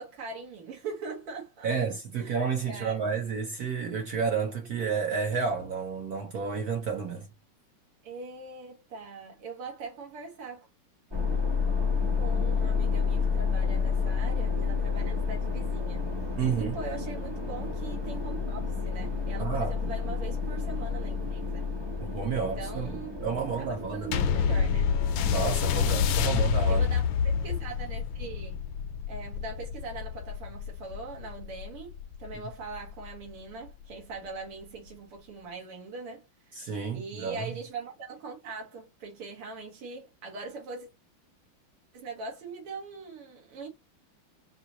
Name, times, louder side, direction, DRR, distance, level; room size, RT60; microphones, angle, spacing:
voice 1, 0.0-1.7 2.2-2.4 2.7-3.0 8.0-10.7 12.2-16.1 16.6-21.7 22.3-23.2 23.6-24.9 26.2-26.4 26.7-27.0 27.3-28.6 29.1-40.9 41.9-43.7, right 3 dB, 85° right, 2.5 m, -41 dB
voice 2, 1.6-7.3 16.4-16.8 19.4-19.9 22.0-22.9 23.2-24.3 25.2-26.9 36.5-37.5, right 5 dB, 60° right, 1.0 m, -31 dB
sound 1, 11.1-27.6, left 5 dB, 30° right, 0.5 m, -31 dB
sound 2, 24.1-32.9 33.6-33.7, left 7 dB, 75° left, 1.3 m, -28 dB
5.4 x 2.8 x 2.9 m
omnidirectional pair, 2.4 m